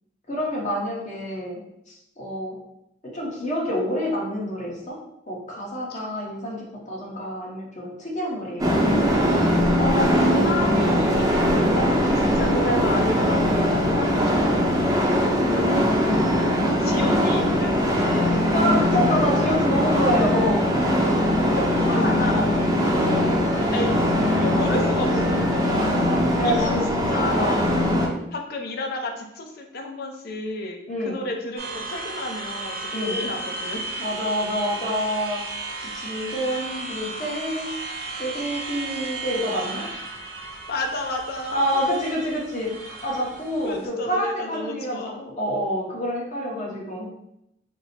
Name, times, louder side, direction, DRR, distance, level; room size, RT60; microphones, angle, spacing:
voice 1, 0.3-1.6 1.9-2.6 3.1-5.0 5.3-8.9 15.5-15.8 16.6-17.0 18.5-20.7 23.5-23.8 24.5-25.5 26.4-27.6 30.9-31.2 32.9-33.2 34.0-35.4 35.8-37.7 38.2-39.9 41.5-47.1, equal, 40° left, -3 dB, 1.0 m, -28 dB
sound 1, 8.6-28.1, equal, 20° right, 0.6 m, -21 dB
voice 2, 9.8-11.3 11.7-16.5 16.8-18.5 21.6-23.4 23.7-26.1 26.4-27.7 28.3-30.8 31.0-33.9 36.4-36.6 40.7-41.7 43.6-45.3, left 2 dB, 60° left, 3 dB, 0.5 m, -31 dB
sound 2, 31.6-43.9, right 3 dB, 55° right, 0.7 m, -34 dB
3.5 x 2.0 x 4.1 m, 0.80 s
head